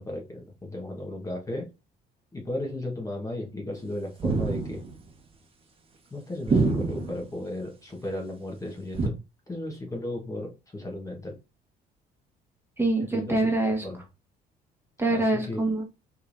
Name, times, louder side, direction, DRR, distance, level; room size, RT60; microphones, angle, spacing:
voice 1, 0.0-1.7 2.3-4.8 6.1-9.1 9.5-11.3 13.1-13.5 13.8-14.0 15.1-15.6, left 1 dB, 20° left, 1.5 m, -35 dB
sound 1, 4.2-5.0 6.5-7.3 8.9-9.1, right 3 dB, 35° right, 1.3 m, -25 dB
voice 2, 12.8-13.8 15.0-15.8, right 2 dB, 15° right, 1.6 m, -25 dB
5.6 x 3.4 x 2.7 m
cardioid pair, 110°, 17 cm